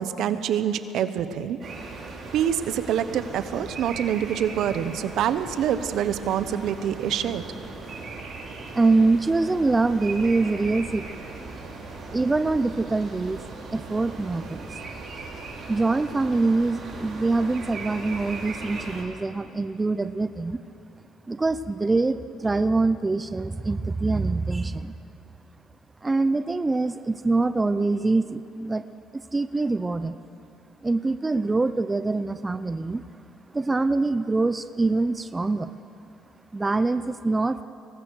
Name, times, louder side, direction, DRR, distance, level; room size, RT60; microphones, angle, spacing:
voice 1, 0.0-1.6 2.3-7.4, right 9 dB, 70° right, 12 dB, 1.0 m, -26 dB
sound 1, 1.6-19.0, right 3 dB, 45° right, 4.9 m, -38 dB
voice 2, 8.7-11.3 12.1-13.4 13.7-14.6 15.7-20.6 21.3-24.9 26.0-28.8 29.1-30.2 30.8-33.0 33.5-35.7 36.5-37.6, right 3 dB, 20° right, 11 dB, 0.6 m, -24 dB
24.5 x 19.0 x 6.4 m, 2.7 s
cardioid pair, 100°, 0 cm